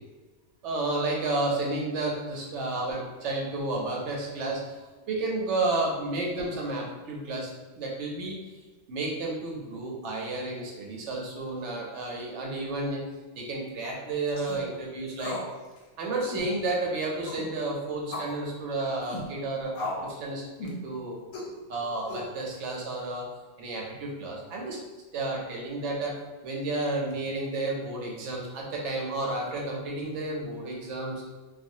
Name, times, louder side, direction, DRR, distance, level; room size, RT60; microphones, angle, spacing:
voice 1, 0.6-4.8 5.1-7.5 7.8-8.4 8.9-13.0 13.4-15.4 16.0-19.7 20.0-21.2 21.5-23.3 23.6-24.8 25.1-26.1 26.4-31.2, right 2 dB, 65° right, -1 dB, 0.8 m, -31 dB
sound 1, 14.3-14.6 15.2-15.5 15.8-15.9 16.2-16.5 17.2-17.5 18.1-18.4 19.0-19.3 19.7-20.1 20.6-20.8 21.3-21.5 22.1-22.6, left 2 dB, 90° left, 1.1 m, -36 dB
2.5 x 2.2 x 2.6 m, 1.3 s
omnidirectional pair, 1.5 m